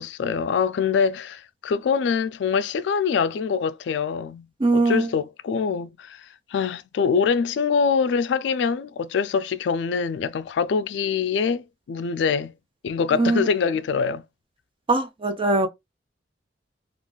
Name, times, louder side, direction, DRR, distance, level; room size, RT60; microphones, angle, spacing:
voice 1, 0.0-4.5 4.7-6.2 6.5-12.5 12.8-14.2, left 6 dB, 70° left, 0.3 m, -24 dB
voice 2, 4.6-5.1 13.1-13.5 14.9-15.7, right 2 dB, 30° right, 0.5 m, -21 dB
2.4 x 2.3 x 3.7 m
head